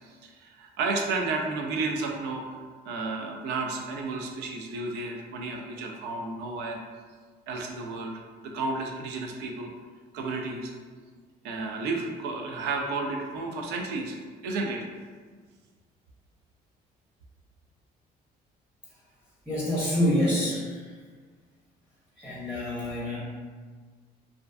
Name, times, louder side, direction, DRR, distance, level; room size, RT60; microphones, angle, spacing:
voice 1, 0.0-2.6 2.8-6.8 7.5-9.7 10.1-10.7 11.4-14.2 14.4-14.9, right 3 dB, 85° right, 1 dB, 0.4 m, -32 dB
voice 2, 19.5-20.6 22.2-23.2, left 1 dB, 5° right, -7 dB, 0.7 m, -26 dB
2.4 x 2.3 x 2.3 m, 1.5 s
cardioid pair, 110°, 17 cm